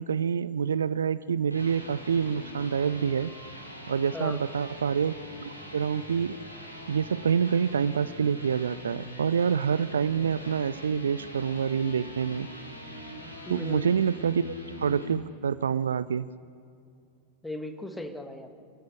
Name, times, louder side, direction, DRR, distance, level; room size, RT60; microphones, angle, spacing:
voice 1, 0.0-3.3 3.9-5.1 5.4-6.4 6.9-12.5 13.5-14.4 14.8-16.3, right 7 dB, 70° right, 18 dB, 0.4 m, -27 dB
sound 1, 1.2-15.2, left 1 dB, 90° left, 3.0 m, -43 dB
voice 2, 13.4-13.9 17.4-18.6, left 1 dB, 5° left, 7 dB, 1.7 m, -37 dB
27.0 x 14.5 x 6.9 m, 2.4 s
figure-of-eight pair, 90°, 0 cm